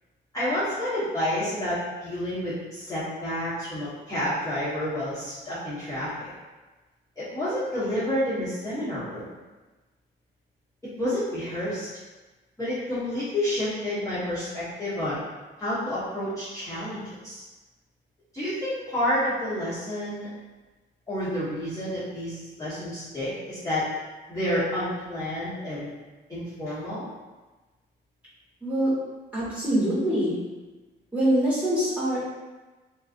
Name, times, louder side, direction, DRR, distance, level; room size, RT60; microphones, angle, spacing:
voice 1, 0.3-6.3 7.2-9.2 11.0-11.9 12.6-15.2 15.6-17.4 18.3-20.3 21.1-23.8 24.3-25.9 26.3-27.1, left 1 dB, 15° left, -13 dB, 1.1 m, -29 dB
voice 2, 28.6-28.9 29.3-30.4 31.1-32.2, right 1 dB, 5° right, -11 dB, 1.3 m, -24 dB
2.5 x 2.3 x 2.5 m, 1.2 s
cardioid pair, 90°, 20 cm